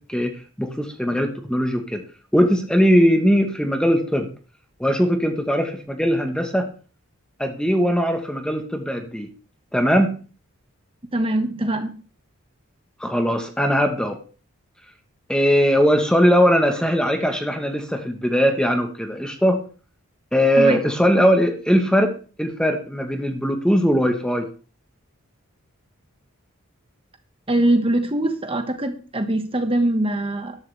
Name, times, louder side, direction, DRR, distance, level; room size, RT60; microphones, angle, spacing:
voice 1, 0.0-2.0 2.3-4.3 4.8-6.7 7.4-9.3 9.7-10.2 13.0-14.2 15.3-19.6 20.3-24.5, equal, 5° left, 5 dB, 1.2 m, -20 dB
voice 2, 11.1-11.9 20.6-20.8 27.5-30.6, right 1 dB, 25° right, 6 dB, 1.5 m, -22 dB
13.0 x 12.0 x 3.4 m, 0.37 s
head